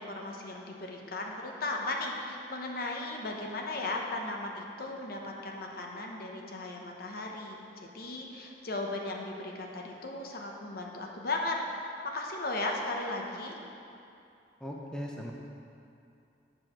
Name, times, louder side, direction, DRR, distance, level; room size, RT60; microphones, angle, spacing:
voice 1, 0.0-13.6, left 2 dB, 55° left, 1 dB, 0.8 m, -36 dB
voice 2, 14.6-15.3, equal, 5° left, -2 dB, 0.5 m, -38 dB
7.7 x 4.8 x 6.0 m, 2.6 s
head